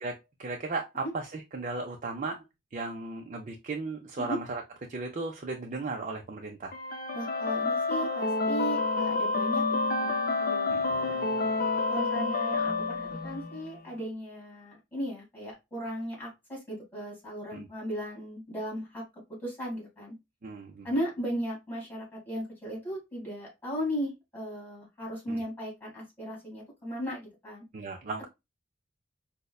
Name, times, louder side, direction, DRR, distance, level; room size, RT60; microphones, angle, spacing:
voice 1, 0.0-2.4 2.7-4.6 4.9-6.7 10.7-10.8 17.5-17.7 20.4-20.9 25.3-25.4 27.7-28.2, right 3 dB, 40° right, 0.4 m, -36 dB
sound 1, 6.7-13.7, left 3 dB, 50° left, 0.6 m, -29 dB
voice 2, 7.1-9.6 10.0-11.2 11.9-19.0 19.4-20.1 20.8-27.6 28.2-28.3, equal, 10° left, 2.3 m, -36 dB
5.2 x 2.1 x 2.3 m
head